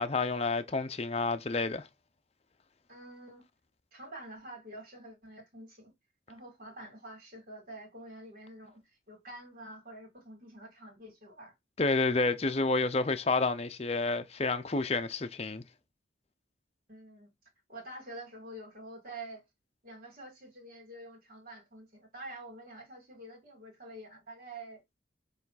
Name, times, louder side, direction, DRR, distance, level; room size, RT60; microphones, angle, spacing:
voice 1, 0.0-1.9 11.8-15.6, left 3 dB, 30° left, 0.7 m, -29 dB
voice 2, 2.9-3.4 3.9-5.9 6.3-11.5 16.9-17.3 17.7-19.4 19.8-25.0, right 1 dB, 45° right, 2.8 m, -47 dB
7.0 x 3.3 x 4.1 m
head